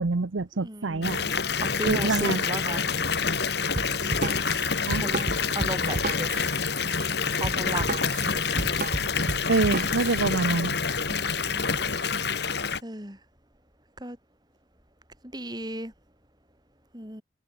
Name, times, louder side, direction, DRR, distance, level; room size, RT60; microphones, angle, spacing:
voice 1, 0.0-1.2 1.8-2.4 4.9-5.0 9.5-10.8, right 3 dB, 85° right, 0.8 m, -26 dB
voice 2, 0.6-2.9 5.0-6.6 7.3-7.9 8.2-8.7 9.1-9.3 11.1-11.6 12.8-13.2 14.0-14.2 15.3-15.9 16.9-17.2, right 1 dB, 20° right, 6.5 m, -36 dB
Water tap faucet / Bathtub (filling or washing) / Fill (with liquid), 1.0-12.8, left 5 dB, 60° left, 1.8 m, -27 dB
Drum kit, 3.8-10.2, right 2 dB, 45° right, 1.1 m, -33 dB
head